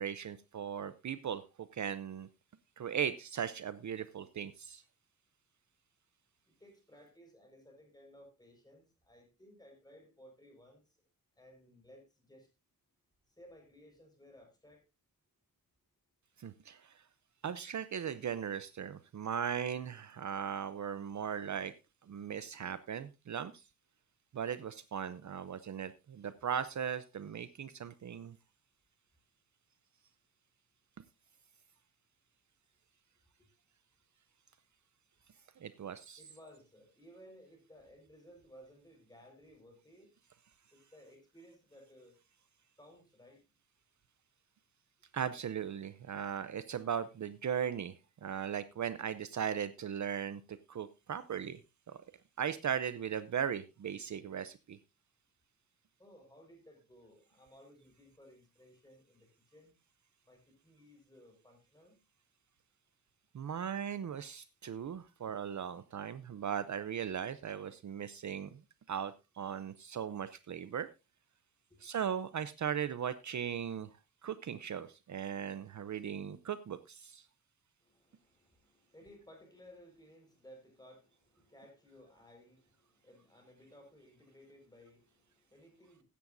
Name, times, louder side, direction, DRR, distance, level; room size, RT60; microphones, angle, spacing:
voice 1, 0.0-1.4 1.7-2.3 2.8-4.8 16.4-16.9 17.4-21.7 22.1-23.6 24.3-28.4 35.6-36.2 45.1-47.9 48.2-50.4 50.7-51.6 51.9-52.0 52.4-54.8 63.3-68.6 68.9-70.9 71.8-73.9 74.2-77.2, right 8 dB, 55° right, 13 dB, 0.6 m, -38 dB
voice 2, 6.5-11.0 11.4-12.5 13.3-14.8 33.4-33.5 36.2-40.1 40.7-42.2 42.8-43.4 56.0-59.7 60.2-62.0 71.7-71.8 77.8-86.0, equal, 10° left, 2 dB, 4.8 m, -59 dB
15.5 x 11.0 x 2.6 m, 0.26 s
wide cardioid pair, 175°, 34 cm